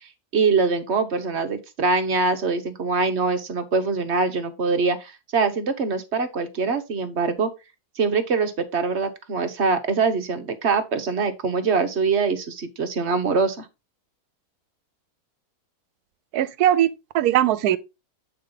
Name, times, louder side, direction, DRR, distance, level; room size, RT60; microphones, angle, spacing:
voice 1, 0.3-7.5 8.0-13.7, right 4 dB, 50° right, 1.1 m, -23 dB
voice 2, 16.3-17.8, right 11 dB, 75° right, 1.2 m, -20 dB
8.4 x 4.4 x 3.8 m
omnidirectional pair, 1.7 m